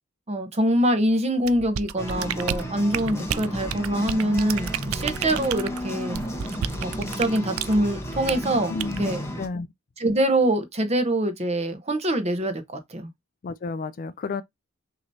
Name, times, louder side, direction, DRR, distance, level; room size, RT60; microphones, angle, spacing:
voice 1, 0.3-6.2 6.8-6.9 7.2-9.2 10.0-12.6 12.9-13.1, right 1 dB, 30° right, 0.9 m, -24 dB
sound 1, 1.4-7.8 8.3-8.5 8.8-9.0, right 9 dB, 90° right, 0.4 m, -31 dB
sound 2, 2.0-9.5, equal, 15° left, 1.0 m, -33 dB
voice 2, 8.7-9.7 13.4-14.4, left 4 dB, 40° left, 0.4 m, -32 dB
6.2 x 3.0 x 2.7 m
head